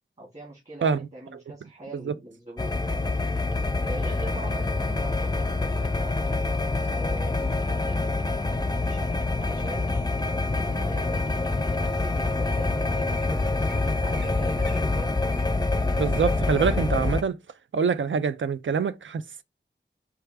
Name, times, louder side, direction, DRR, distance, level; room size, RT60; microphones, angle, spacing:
voice 1, 0.2-3.3 3.8-6.5 6.9-8.2 8.8-9.9 10.5-11.3 11.8-15.2, right 1 dB, 35° right, 1.9 m, -42 dB
sound 1, 2.6-17.2, left 3 dB, 20° left, 0.4 m, -26 dB
Wild animals, 6.8-7.6 8.3-8.6 9.1-9.5 10.0-11.0 11.6-11.7 12.2-12.3 12.5-12.7 12.9-13.2 13.7-13.8 14.1-14.3 14.6-16.8 17.2-17.3, equal, 65° right, 2.0 m, -46 dB
voice 2, 16.0-17.4 17.7-19.4, right 6 dB, 80° right, 0.4 m, -25 dB
4.7 x 2.4 x 3.3 m
wide cardioid pair, 40°, 19 cm